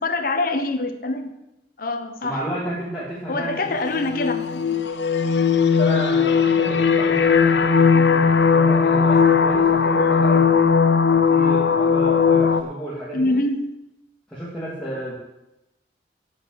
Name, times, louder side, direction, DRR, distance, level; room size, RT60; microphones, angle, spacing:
voice 1, 0.0-1.3 1.8-2.4 3.3-4.9 13.1-13.7, left 2 dB, 55° left, 5 dB, 1.1 m, -25 dB
voice 2, 2.2-3.6 5.8-10.7 11.1-13.3 14.3-15.2, equal, 5° left, -9 dB, 3.0 m, -31 dB
sound 1, 3.6-12.6, left 6 dB, 70° left, 0.8 m, -18 dB
8.6 x 8.5 x 7.9 m, 0.92 s
head